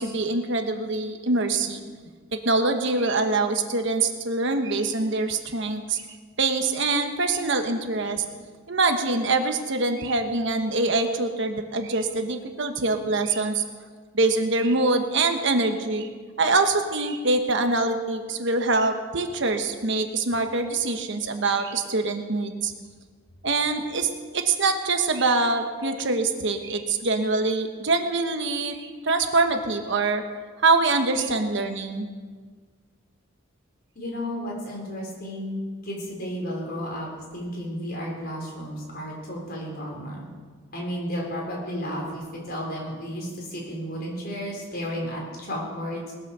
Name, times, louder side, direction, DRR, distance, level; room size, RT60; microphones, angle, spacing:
voice 1, 0.0-1.9 2.3-6.0 6.4-8.2 8.7-13.6 14.1-16.1 16.4-22.7 23.4-30.2 30.6-32.1, right 3 dB, 60° right, 6 dB, 1.2 m, -24 dB
voice 2, 33.9-37.1 37.3-40.3 40.7-46.1, equal, 50° left, -2 dB, 4.8 m, -33 dB
20.0 x 9.1 x 6.9 m, 1.5 s
head